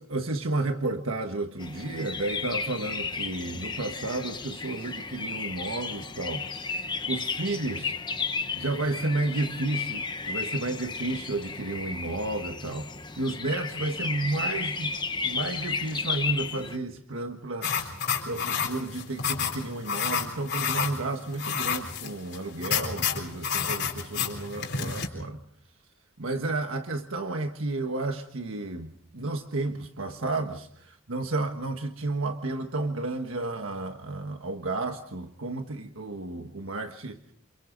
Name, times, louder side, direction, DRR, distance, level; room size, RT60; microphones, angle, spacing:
voice 1, 0.0-8.0 8.5-12.9 13.2-14.9 15.2-25.4 26.2-37.3, right 2 dB, 90° right, 1.4 m, -32 dB
sound 1, 1.6-16.8, left 5 dB, 20° left, 1.0 m, -33 dB
sound 2, 17.6-25.1, left 6 dB, 50° left, 4.1 m, -30 dB
28.5 x 28.5 x 4.0 m
head